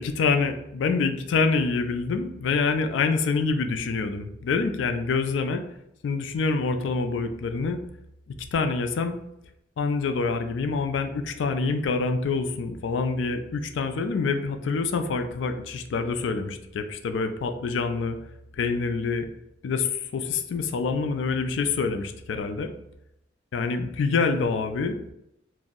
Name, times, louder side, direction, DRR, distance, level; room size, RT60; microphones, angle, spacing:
voice 1, 0.0-5.6 6.0-7.8 8.5-9.2 9.8-18.2 18.6-19.3 19.6-22.7 23.5-25.0, left 4 dB, 75° left, 8 dB, 0.3 m, -26 dB
2.6 x 2.0 x 3.6 m, 0.80 s
head